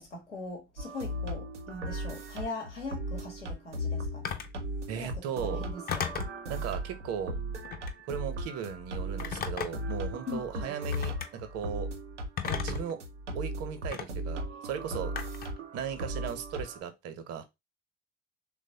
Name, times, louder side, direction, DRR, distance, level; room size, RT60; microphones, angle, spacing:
voice 1, 0.0-4.2 4.9-5.1 5.4-6.1 10.3-10.7, left 2 dB, 90° left, 0.9 m, -40 dB
sound 1, 0.8-16.8, equal, 85° right, 0.5 m, -37 dB
Telephone, 4.2-4.6 5.9-6.4 7.6-8.0 9.2-9.9 10.9-11.3 12.4-12.9 13.9-14.1 15.2-15.6, left 7 dB, 25° left, 0.5 m, -34 dB
voice 2, 4.9-5.6 6.5-7.4 8.1-11.9 12.6-13.0 13.3-15.1 15.7-17.4, right 8 dB, 45° right, 0.6 m, -37 dB
3.2 x 2.0 x 2.7 m
figure-of-eight pair, 55°, 35 cm